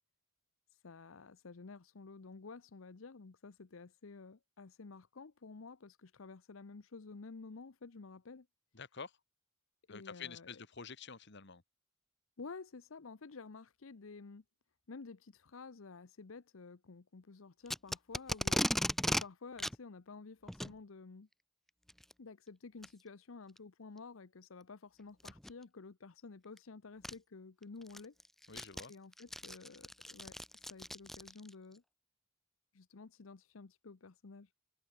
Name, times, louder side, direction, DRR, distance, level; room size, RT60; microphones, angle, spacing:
voice 1, 0.7-8.5 9.9-10.6 12.4-14.4 14.9-21.3 22.2-28.1 28.9-31.8 32.7-34.5, left 4 dB, 75° left, 0.8 m, -52 dB
voice 2, 8.7-9.1 9.9-11.6 28.5-28.9, left 5 dB, 55° left, 1.9 m, -48 dB
Packing tape duct tape, 17.7-19.2 19.6-19.8 20.5-20.7 21.9-22.1 22.8-22.9 23.6-23.7 25.2-25.5 26.6-26.7 27.0-27.1 27.6-31.5, equal, ahead, 0.4 m, -36 dB
head